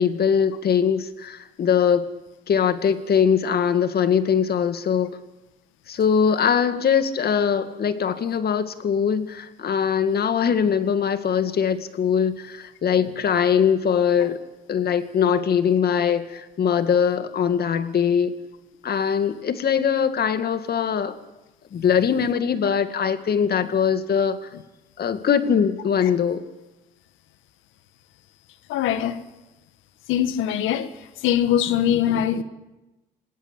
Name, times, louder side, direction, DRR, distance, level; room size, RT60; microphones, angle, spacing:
voice 1, 0.0-2.1 2.5-5.1 5.9-14.4 14.7-18.3 18.8-21.2 21.7-24.4 25.0-26.4, left 7 dB, 50° left, 2.1 m, -21 dB
voice 2, 28.7-29.2 30.1-30.9 31.2-32.4, left 10 dB, 75° left, 1.7 m, -22 dB
27.5 x 18.5 x 8.4 m
supercardioid pair, 75°, 21 cm